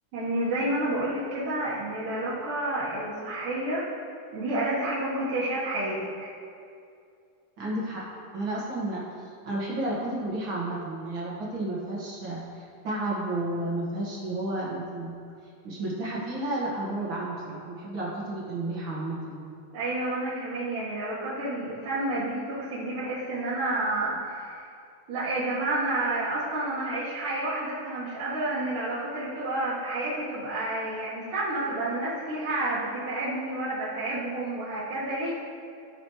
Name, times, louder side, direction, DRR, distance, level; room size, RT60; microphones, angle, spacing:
voice 1, 0.1-3.8 4.3-6.3 19.7-24.7 25.1-35.3, right 2 dB, 75° right, -10 dB, 3.1 m, -30 dB
voice 2, 7.6-8.0 8.3-9.0 9.4-12.4 12.8-15.1 15.6-19.5, right 1 dB, 45° right, -6 dB, 2.0 m, -31 dB
15.5 x 6.3 x 3.2 m, 2.5 s
omnidirectional pair, 3.7 m